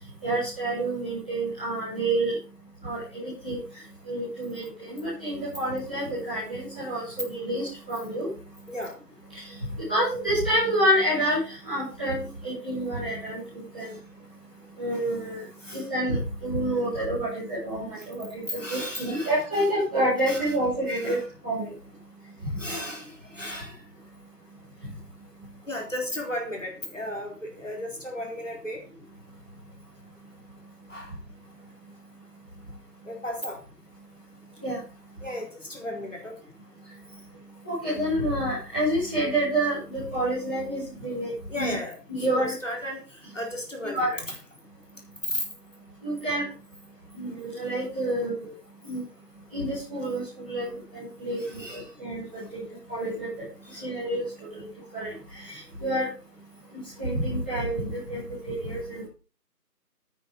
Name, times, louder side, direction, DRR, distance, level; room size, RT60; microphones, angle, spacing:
voice 1, 0.2-2.4 2.8-3.6 4.0-8.3 9.3-9.6 9.9-13.9 14.8-15.4 15.7-21.2 21.4-21.7 22.4-22.6 34.6-34.8 37.6-41.7 42.1-42.5 43.9-44.1 46.0-46.5 47.1-48.5 48.8-49.0 49.5-53.3 53.7-54.2 54.5-54.7 54.9-56.1 57.0-59.0, right 1 dB, 5° left, -16 dB, 3.8 m, -28 dB
voice 2, 18.5-19.6 20.3-20.4 20.9-21.2 22.6-23.8 25.7-28.8 30.9-31.1 33.0-33.6 35.2-36.4 41.5-42.0 42.3-44.2 45.3-45.4 51.4-51.9 53.6-53.9, left 1 dB, 50° left, 0 dB, 4.2 m, -34 dB
9.7 x 9.2 x 5.6 m, 0.35 s
figure-of-eight pair, 175°, 48 cm